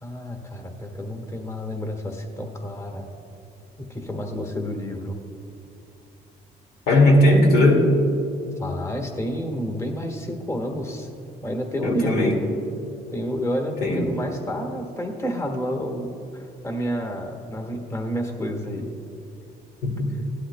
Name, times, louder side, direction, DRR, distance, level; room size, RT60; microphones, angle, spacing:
voice 1, 0.0-3.1 3.8-5.2 8.6-11.1 11.4-12.3 13.1-18.9, equal, 15° left, 3 dB, 1.4 m, -29 dB
voice 2, 6.9-7.9 11.8-12.4 13.8-14.1 19.8-20.2, left 1 dB, 70° left, 1 dB, 2.2 m, -18 dB
17.0 x 11.5 x 2.2 m, 2.8 s
cardioid pair, 110°, 17 cm